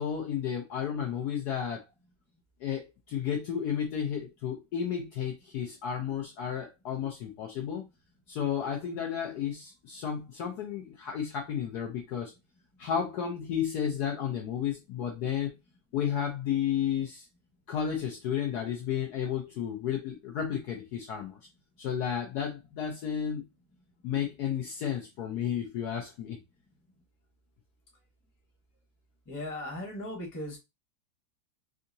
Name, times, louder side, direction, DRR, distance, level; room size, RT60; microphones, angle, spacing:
voice 1, 0.0-1.8 2.6-7.9 8.3-12.3 12.8-15.6 15.9-17.2 17.7-21.4 21.8-23.4 24.0-26.4, left 8 dB, 70° left, 1.0 m, -32 dB
voice 2, 29.3-30.6, left 1 dB, 15° left, 0.8 m, -37 dB
3.7 x 2.7 x 2.6 m
omnidirectional pair, 2.1 m